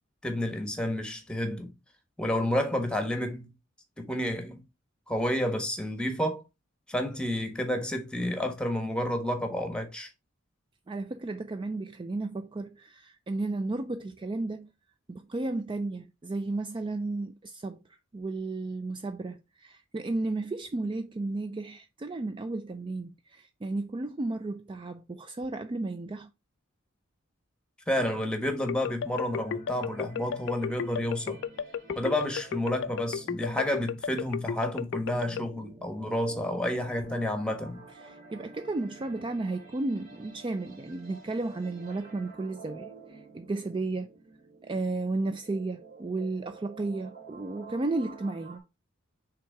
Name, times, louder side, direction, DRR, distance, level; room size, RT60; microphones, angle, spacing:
voice 1, 0.2-1.7 2.2-3.5 4.0-4.6 5.1-6.4 6.9-10.1 27.9-31.4 32.0-37.8, left 1 dB, 5° left, 1.2 m, -30 dB
voice 2, 10.9-14.7 15.1-26.3 38.0-44.2 44.6-48.6, right 2 dB, 25° right, 0.4 m, -33 dB
sound 1, 28.7-35.4, left 7 dB, 65° left, 0.4 m, -33 dB
sound 2, 29.3-48.6, right 4 dB, 45° right, 2.6 m, -50 dB
6.0 x 3.6 x 4.5 m
head